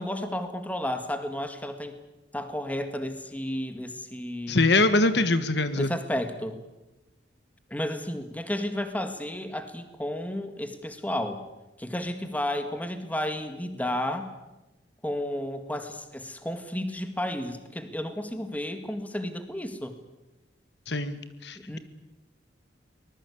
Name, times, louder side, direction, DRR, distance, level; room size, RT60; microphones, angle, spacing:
voice 1, 0.0-2.0 2.3-4.6 5.8-6.6 7.7-11.4 11.8-14.3 15.0-19.9 21.6-21.8, left 1 dB, 10° left, 8 dB, 1.9 m, -32 dB
voice 2, 4.5-5.9 20.9-21.8, left 2 dB, 65° left, 11 dB, 1.5 m, -23 dB
24.0 x 20.0 x 8.4 m, 1.0 s
head